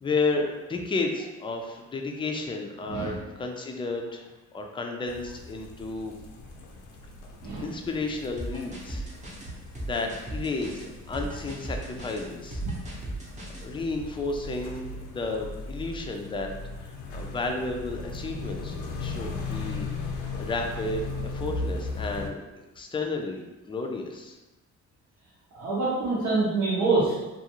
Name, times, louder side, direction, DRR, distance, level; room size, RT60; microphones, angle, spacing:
voice 1, 0.0-6.1 7.6-9.0 9.4-9.5 9.8-12.6 13.6-16.5 16.8-19.9 20.4-22.4 22.8-23.4 23.7-24.4, left 3 dB, 15° left, 3 dB, 0.3 m, -32 dB
sound 1, 5.1-22.3, left 3 dB, 80° left, 0.5 m, -38 dB
sound 2, 8.4-13.7, right 2 dB, 25° right, 0.7 m, -37 dB
voice 2, 25.5-27.3, right 3 dB, 80° right, -9 dB, 0.8 m, -25 dB
2.4 x 2.3 x 2.9 m, 1.1 s
cardioid pair, 90°, 30 cm